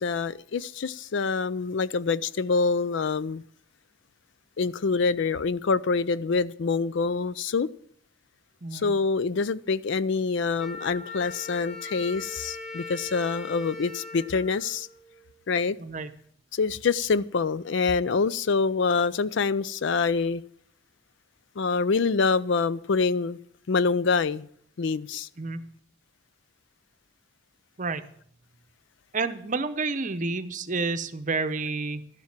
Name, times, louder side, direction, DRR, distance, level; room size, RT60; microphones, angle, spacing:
voice 1, 0.0-3.4 4.6-7.7 8.7-14.9 15.5-15.8 16.5-20.4 21.6-23.4 23.7-24.5 24.8-25.3, left 4 dB, 60° left, 0.4 m, -26 dB
voice 2, 8.6-8.9 15.8-16.1 25.4-25.6 27.8-28.0 29.1-32.1, right 3 dB, 40° right, 0.8 m, -29 dB
Wind instrument woodwind instrument, 10.6-15.4, left 3 dB, 35° left, 1.4 m, -40 dB
12.5 x 7.5 x 7.3 m
head